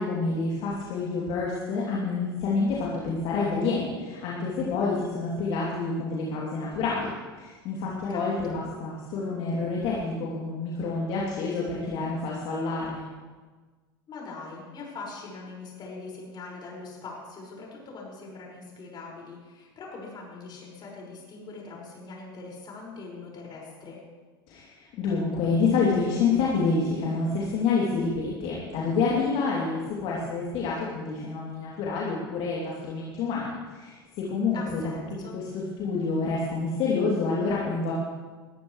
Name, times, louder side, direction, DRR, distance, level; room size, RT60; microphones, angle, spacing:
voice 1, 0.0-7.1 7.4-13.0 24.5-34.8 35.3-37.9, left 4 dB, 50° left, -5 dB, 3.0 m, -28 dB
voice 2, 8.1-8.6 14.1-24.0 34.5-35.4, left 3 dB, 35° left, -2 dB, 5.7 m, -42 dB
21.0 x 13.5 x 3.3 m, 1.4 s
hypercardioid pair, 80°, 12 cm